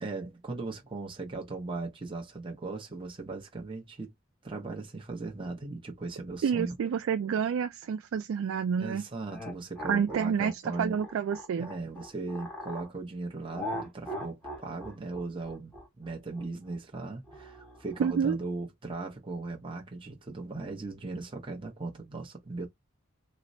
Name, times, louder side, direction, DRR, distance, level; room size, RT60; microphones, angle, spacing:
voice 1, 0.0-4.1 4.4-6.7 8.8-11.0 11.6-22.7, right 3 dB, 25° right, 0.7 m, -38 dB
voice 2, 6.4-9.0 9.9-11.7 18.0-18.4, right 7 dB, 70° right, 0.3 m, -29 dB
sound 1, 9.3-12.9 13.5-18.0, equal, 5° left, 1.1 m, -41 dB
4.2 x 2.0 x 2.7 m
head